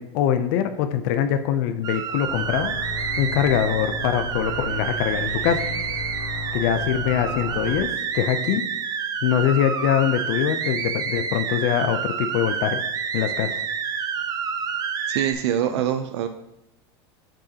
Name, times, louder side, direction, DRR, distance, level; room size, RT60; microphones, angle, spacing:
voice 1, 0.0-2.7 3.2-5.6 6.5-7.9 8.1-8.6 9.2-12.8 13.1-13.6, left 10 dB, 60° left, 9 dB, 0.4 m, -23 dB
sound 1, 1.8-15.3, right 7 dB, 25° right, 0.5 m, -28 dB
sound 2, 2.3-7.8, left 2 dB, 80° left, 1.4 m, -34 dB
voice 2, 15.1-16.3, right 10 dB, 80° right, 8 dB, 0.4 m, -24 dB
7.5 x 4.8 x 2.8 m, 0.86 s
supercardioid pair, 135°, 14 cm